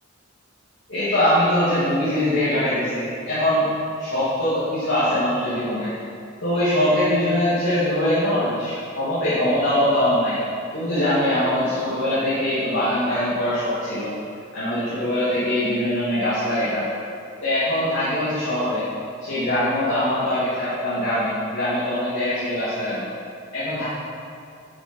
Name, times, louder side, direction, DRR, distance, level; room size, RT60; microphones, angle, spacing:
voice 1, 0.9-3.7 4.0-5.9 6.4-10.4 10.7-14.1 14.5-16.9 17.4-18.8 19.2-23.1 23.5-23.8, left 1 dB, 60° left, -11 dB, 2.6 m, -22 dB
10.0 x 7.1 x 5.5 m, 2.5 s
head